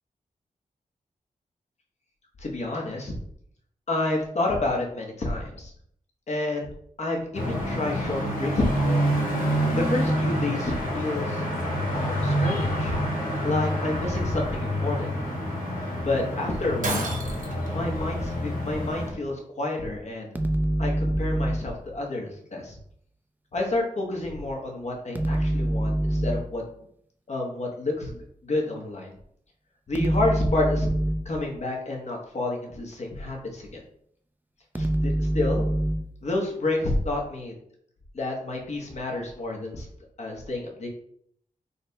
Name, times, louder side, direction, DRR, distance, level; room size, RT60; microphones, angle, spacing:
voice 1, 2.4-3.1 3.9-5.7 6.3-6.7 7.0-9.1 9.7-11.4 11.9-12.9 13.4-15.1 16.0-17.3 17.7-20.3 20.8-22.8 23.5-26.6 27.3-29.1 29.9-30.9 31.2-33.8 34.8-35.7 36.2-37.5 38.1-39.9 40.2-40.9, left 2 dB, 50° left, 0 dB, 0.9 m, -29 dB
sound 1, 7.3-19.1, equal, 70° left, 1.5 m, -27 dB
Shatter, 16.8-17.7, right 2 dB, 65° right, 0.9 m, -30 dB
sound 2, 20.4-21.8 25.2-26.6 30.0-31.4 34.8-36.2, right 1 dB, 10° right, 0.3 m, -25 dB
4.1 x 2.2 x 3.9 m, 0.66 s
wide cardioid pair, 120°, 15 cm